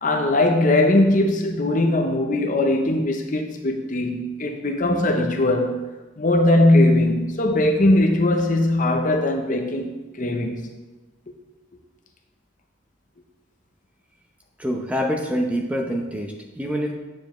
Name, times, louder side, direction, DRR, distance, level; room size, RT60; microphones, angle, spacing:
voice 1, 0.0-5.8 6.2-9.9 10.2-10.7, left 1 dB, 40° left, 0.7 m, -20 dB
voice 2, 14.6-16.9, equal, 5° right, 0.7 m, -26 dB
9.5 x 7.0 x 3.1 m
head